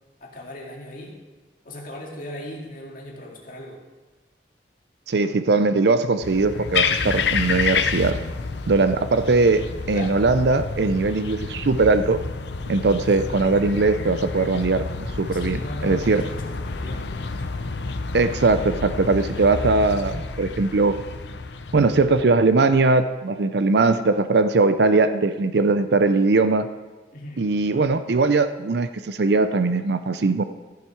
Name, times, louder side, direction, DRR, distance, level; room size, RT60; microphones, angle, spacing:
voice 1, 0.2-1.2 1.6-3.8 9.9-10.2 15.3-17.5 19.3-19.7 27.1-27.5, left 1 dB, 50° left, -2 dB, 2.2 m, -38 dB
voice 2, 5.1-8.2 8.7-12.2 12.7-16.2 18.1-21.0 21.7-26.7 27.4-30.4, right 3 dB, 65° right, 11 dB, 0.5 m, -20 dB
sound 1, 6.2-22.2, left 4 dB, 70° left, 0.7 m, -29 dB
15.0 x 7.2 x 4.6 m, 1.2 s
head